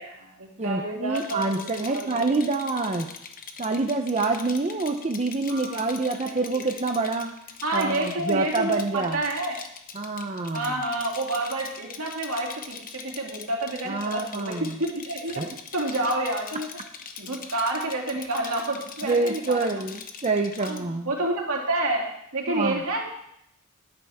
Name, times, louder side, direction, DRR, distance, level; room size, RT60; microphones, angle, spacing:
voice 1, 0.0-1.5 1.8-2.2 5.5-6.7 7.6-9.6 10.5-15.4 15.7-16.7 17.2-19.8 20.6-23.0, right 2 dB, 80° right, -1 dB, 2.8 m, -29 dB
voice 2, 0.6-3.1 3.6-7.3 7.7-9.2 9.9-10.7 13.9-14.7 15.4-15.6 19.0-21.1 22.5-22.8, right 3 dB, 30° right, 4 dB, 0.7 m, -27 dB
Rattle, 1.1-20.8, left 6 dB, 40° left, 0.9 m, -42 dB
13.0 x 10.5 x 3.6 m, 0.75 s
head